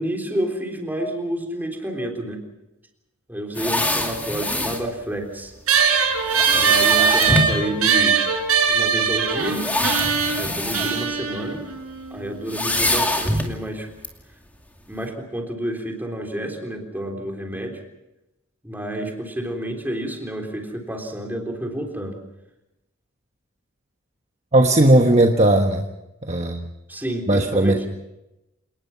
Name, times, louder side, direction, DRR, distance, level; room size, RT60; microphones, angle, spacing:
voice 1, 0.0-2.4 3.3-5.5 6.5-8.2 8.7-9.7 10.3-11.6 12.1-13.9 14.9-17.8 18.6-22.2 26.9-27.9, right 1 dB, 10° right, 2 dB, 3.7 m, -29 dB
sound 1, 3.5-4.8 6.3-7.6 8.5-8.6 9.4-11.1 11.4-11.6 12.5-13.6 14.0-14.1, left 1 dB, 5° left, 2.5 m, -24 dB
sound 2, 5.7-12.5, right 6 dB, 85° right, 5.4 m, -21 dB
voice 2, 24.5-25.8 26.3-26.6 27.3-27.9, right 1 dB, 30° right, 3 dB, 1.3 m, -17 dB
28.0 x 19.5 x 5.8 m, 0.92 s
head